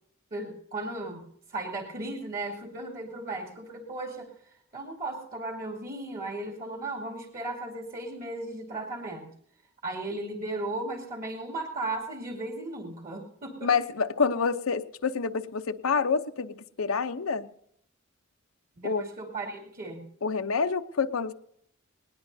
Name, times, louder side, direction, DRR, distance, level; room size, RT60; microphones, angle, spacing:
voice 1, 0.3-4.3 4.7-9.3 9.8-13.7 18.8-20.0, right 2 dB, 45° right, 1 dB, 2.5 m, -36 dB
voice 2, 13.6-17.5 18.8-19.0 20.2-21.3, left 5 dB, 85° left, 9 dB, 0.7 m, -27 dB
19.5 x 19.5 x 2.7 m, 0.68 s
head